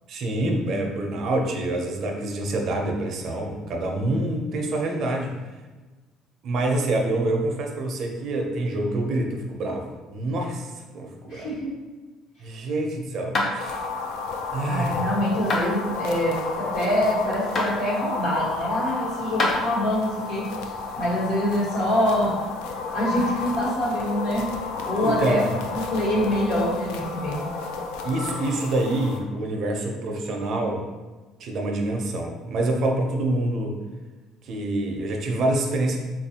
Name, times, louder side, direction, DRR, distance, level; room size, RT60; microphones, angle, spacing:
voice 1, 0.1-5.3 6.4-11.5 12.4-13.9 14.5-15.0 23.2-23.3 25.0-25.5 28.0-30.9 31.4-33.8 34.4-36.0, right 1 dB, 45° right, 2 dB, 0.5 m, -26 dB
voice 2, 11.3-11.7 14.7-20.4 21.0-22.4 22.9-24.4 24.8-27.5, equal, 65° left, -5 dB, 1.2 m, -25 dB
sound 1, 13.3-13.5 15.5-15.7 17.5-17.7 19.4-19.6, left 2 dB, 30° left, 0.5 m, -23 dB
sound 2, 13.6-29.2, left 4 dB, 85° left, 0.3 m, -32 dB
3.9 x 2.4 x 2.7 m, 1.2 s
cardioid pair, 150°, 0 cm